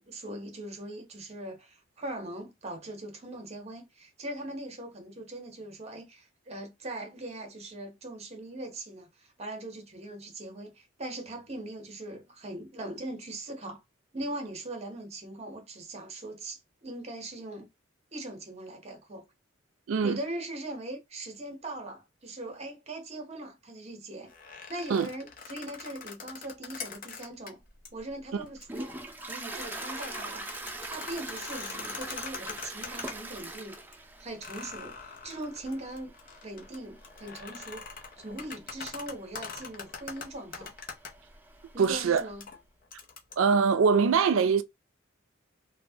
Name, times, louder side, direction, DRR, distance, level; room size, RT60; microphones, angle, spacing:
voice 1, 0.0-13.8 14.1-17.7 18.1-19.2 20.0-24.3 24.7-27.6 27.9-28.9 29.2-30.5 30.9-33.8 34.2-36.1 36.4-37.9 38.2-40.7 41.7-42.5, right 1 dB, 35° right, 0.8 m, -40 dB
voice 2, 19.9-20.2 24.9-25.1 41.8-42.3 43.4-44.6, right 5 dB, 85° right, 0.4 m, -23 dB
sound 1, 24.3-27.5 27.8-27.9 28.5-28.8 29.1-33.6 33.9-34.0 34.4-41.1 41.8-43.3, left 5 dB, 45° left, 0.6 m, -43 dB
Toilet flush, 27.7-42.4, right 2 dB, 10° right, 0.4 m, -44 dB
3.0 x 2.0 x 2.6 m
head